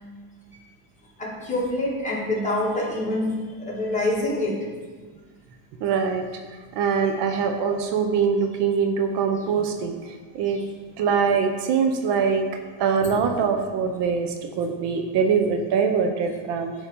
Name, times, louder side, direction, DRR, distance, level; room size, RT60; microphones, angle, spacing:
voice 1, 1.2-3.4 3.7-4.6 13.0-13.1, left 1 dB, 15° left, -4 dB, 1.6 m, -26 dB
voice 2, 5.8-10.6 11.0-16.7, right 6 dB, 60° right, 4 dB, 0.7 m, -23 dB
8.5 x 3.0 x 5.2 m, 1.5 s
cardioid pair, 125°, 46 cm